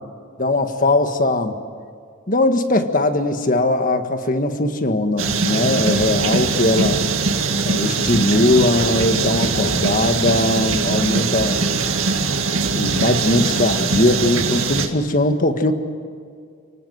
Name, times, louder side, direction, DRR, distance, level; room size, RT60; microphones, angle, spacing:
voice 1, 0.4-1.6 2.3-7.0 7.6-11.7 12.7-15.7, left 2 dB, 40° left, 7 dB, 1.6 m, -19 dB
sound 1, 5.2-14.9, right 4 dB, 75° right, 2.0 m, -21 dB
29.0 x 19.0 x 8.0 m, 2.2 s
head